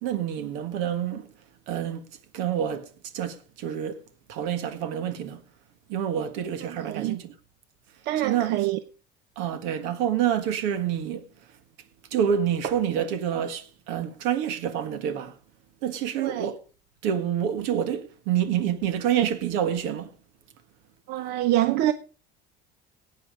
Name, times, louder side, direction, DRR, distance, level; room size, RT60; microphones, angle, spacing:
voice 1, 0.0-1.3 1.7-2.0 2.3-4.0 4.3-5.4 5.9-7.3 8.2-8.5 9.4-11.3 12.1-15.4 15.8-16.6 17.0-20.1, right 9 dB, 80° right, 1.7 m, -27 dB
voice 2, 6.6-7.2 8.0-8.8 16.2-16.5 21.1-21.9, right 14 dB, 60° right, 0.7 m, -26 dB
17.5 x 8.5 x 5.1 m
cardioid pair, 160°, 20 cm